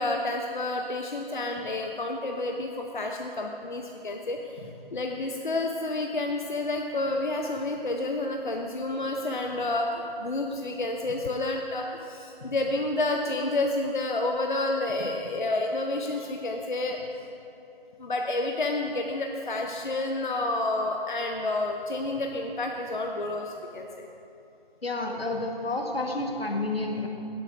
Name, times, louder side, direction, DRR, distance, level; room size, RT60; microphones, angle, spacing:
voice 1, 0.0-4.6 4.9-17.0 18.0-24.1, left 2 dB, 55° left, 2 dB, 0.7 m, -29 dB
voice 2, 24.8-27.1, left 2 dB, 80° left, 2 dB, 1.4 m, -30 dB
17.0 x 8.0 x 2.6 m, 2.8 s
figure-of-eight pair, 165°, 30 cm